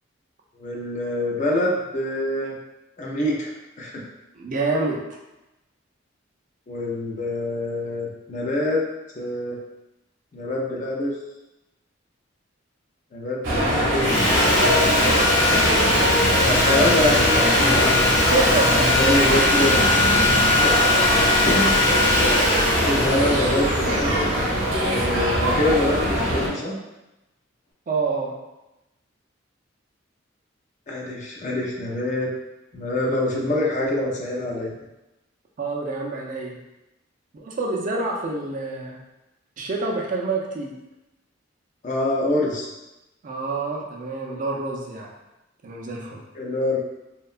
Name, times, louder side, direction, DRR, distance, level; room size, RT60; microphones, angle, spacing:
voice 1, 0.5-2.6 3.0-3.5 3.8-4.0 6.7-8.8 9.2-9.6 10.3-11.1 13.1-14.2 16.4-18.3 18.8-19.8 20.6-20.7 21.4-21.8 22.8-24.3 24.8-26.8 30.9-32.3 32.7-34.7 41.8-42.7 46.3-46.8, left 1 dB, 40° left, -3 dB, 0.4 m, -25 dB
voice 2, 4.3-5.0 18.3-18.9 23.0-23.4 27.9-28.3 35.6-36.6 37.3-39.0 39.6-40.7 43.2-45.1 45.6-46.2, right 3 dB, 40° right, -1 dB, 0.4 m, -27 dB
sound 1, 13.4-26.5, right 1 dB, 80° right, 0.7 m, -22 dB
Sawing, 14.0-25.1, left 2 dB, 65° left, 0.9 m, -21 dB
2.8 x 2.2 x 2.4 m, 0.98 s
head